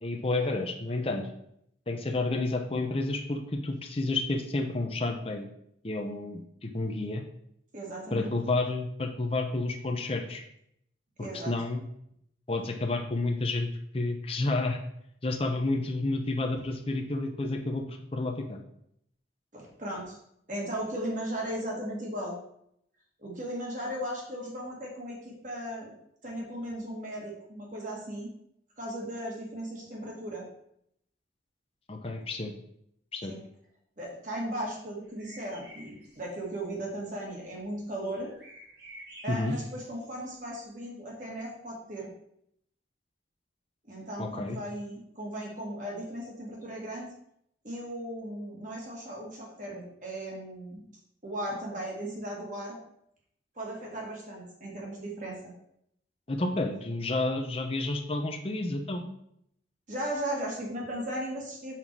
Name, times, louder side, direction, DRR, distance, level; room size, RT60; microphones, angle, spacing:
voice 1, 0.0-1.3 1.9-5.5 5.8-7.2 8.1-10.4 11.2-11.8 12.5-14.8 15.2-18.6 31.9-32.5 33.1-33.3 39.3-39.5 44.2-44.6 56.3-59.1, left 2 dB, 30° left, 3 dB, 0.7 m, -30 dB
voice 2, 7.7-8.3 11.2-11.5 19.5-20.2 20.5-22.4 23.2-25.9 26.2-28.3 28.8-30.5 33.3-33.4 34.0-38.3 39.2-42.1 43.9-47.1 47.6-50.8 51.2-52.8 53.6-55.5 56.8-56.9 59.9-61.8, right 1 dB, 40° right, -2 dB, 2.0 m, -37 dB
sound 1, 35.0-36.8 37.2-37.3 37.6-40.5, equal, 60° right, 1.9 m, -51 dB
5.8 x 5.6 x 4.7 m, 0.73 s
head